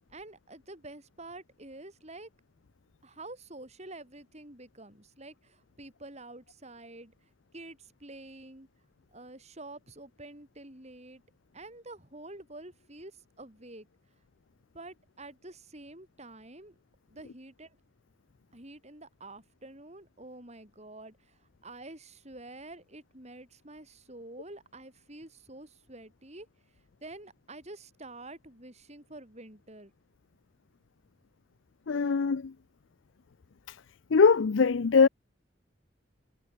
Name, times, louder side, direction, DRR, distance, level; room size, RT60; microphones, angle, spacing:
voice 1, 0.1-2.3 3.0-8.7 9.1-11.2 11.5-13.9 14.7-16.8 17.1-17.8 18.5-26.5 26.7-29.9, right 2 dB, 35° right, 6.6 m, -48 dB
voice 2, 31.9-32.5 33.7-33.8 34.1-35.1, left 5 dB, 80° left, 0.5 m, -22 dB
head